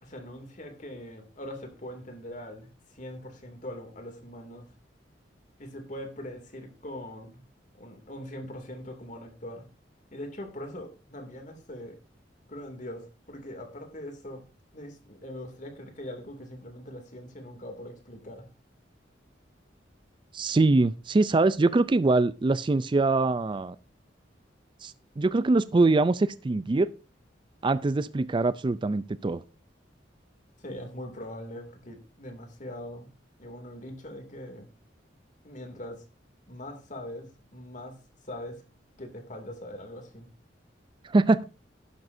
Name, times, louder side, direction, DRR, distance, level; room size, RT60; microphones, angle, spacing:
voice 1, 0.0-4.7 5.6-7.4 7.7-9.7 10.1-12.0 12.5-14.4 14.7-18.5 30.6-33.1 33.4-34.7 35.4-36.0 36.5-38.0 38.2-38.6 39.0-40.3, left 1 dB, 45° left, 2.6 m, -41 dB
voice 2, 20.3-23.8 24.8-26.9 27.6-29.4 41.0-41.4, right 3 dB, 25° right, 0.4 m, -23 dB
11.0 x 11.0 x 2.7 m
head